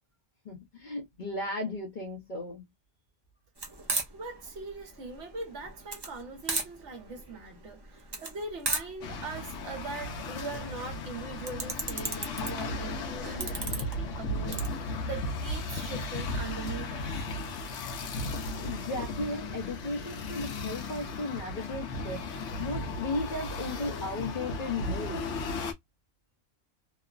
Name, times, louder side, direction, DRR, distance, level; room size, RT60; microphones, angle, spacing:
voice 1, 0.4-2.6 18.6-22.3 22.6-25.3, left 2 dB, 45° left, 0.7 m, -35 dB
sound 1, 3.6-14.7, right 3 dB, 30° right, 0.4 m, -37 dB
voice 2, 4.1-17.3 18.3-18.4, right 3 dB, 65° right, 1.2 m, -41 dB
sound 2, 9.0-25.7, left 2 dB, 70° left, 1.0 m, -35 dB
3.0 x 2.0 x 2.4 m
omnidirectional pair, 1.3 m